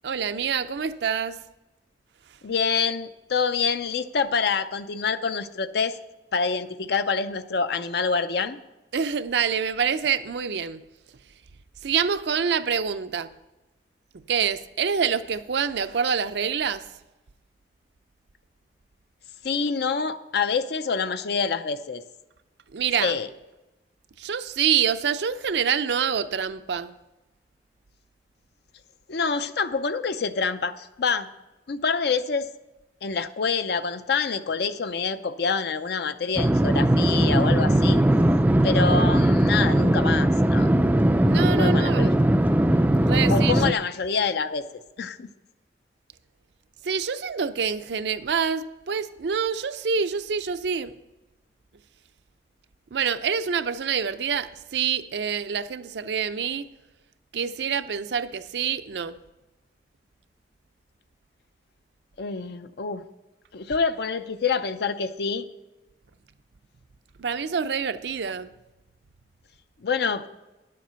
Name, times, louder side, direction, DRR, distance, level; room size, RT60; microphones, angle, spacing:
voice 1, 0.0-1.4 8.9-10.8 11.8-13.3 14.1-16.9 22.7-23.2 24.2-26.9 41.2-42.2 43.0-43.8 46.8-50.9 52.9-56.7 57.3-59.2 67.2-68.5, right 7 dB, 70° right, 0.5 m, -26 dB
voice 2, 2.4-6.0 6.3-8.6 19.4-22.0 23.0-23.3 29.1-31.3 31.7-32.5 33.0-38.0 38.6-40.7 41.6-42.1 43.3-44.7 45.0-45.3 62.2-63.0 63.5-65.5 69.8-70.3, left 5 dB, 65° left, 0.5 m, -26 dB
sound 1, 36.4-43.7, right 1 dB, 10° right, 0.3 m, -19 dB
10.5 x 7.6 x 5.6 m
head